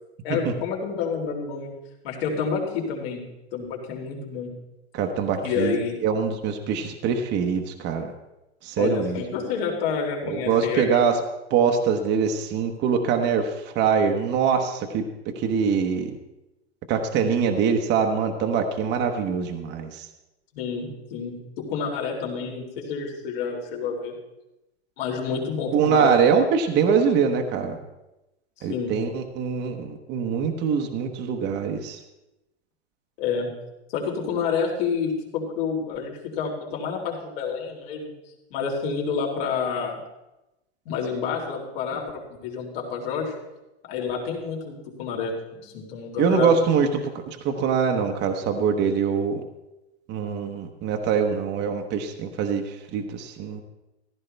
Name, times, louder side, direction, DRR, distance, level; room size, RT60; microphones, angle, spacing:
voice 1, 0.2-1.7 2.0-3.2 3.5-4.5 5.4-6.0 8.8-11.0 20.5-24.1 25.0-26.2 28.6-29.0 33.2-33.5 33.9-38.1 38.5-40.0 40.9-42.0 42.4-43.3 43.9-46.5, left 6 dB, 60° left, 0 dB, 3.6 m, -28 dB
voice 2, 4.9-5.8 6.0-8.1 8.6-9.2 10.2-11.2 11.5-15.0 15.4-16.1 16.9-20.0 25.7-27.8 28.6-32.0 46.2-46.9 47.3-49.4 50.1-53.6, right 6 dB, 30° right, 4 dB, 1.1 m, -23 dB
15.0 x 13.0 x 3.4 m, 0.97 s
hypercardioid pair, 130°, 34 cm